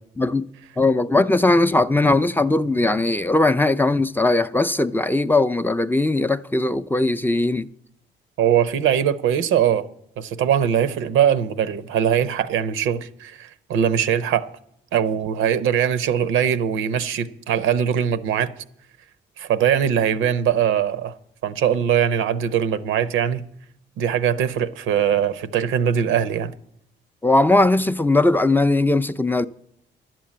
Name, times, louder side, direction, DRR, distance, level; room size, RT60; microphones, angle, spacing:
voice 1, 0.8-7.7 27.2-29.5, left 2 dB, 10° left, 0.4 m, -19 dB
voice 2, 8.4-9.9 10.2-14.5 14.9-18.5 19.4-21.1 21.4-23.4 24.0-26.5, right 9 dB, 90° right, 0.7 m, -21 dB
11.5 x 7.6 x 8.5 m
cardioid pair, 90°, 20 cm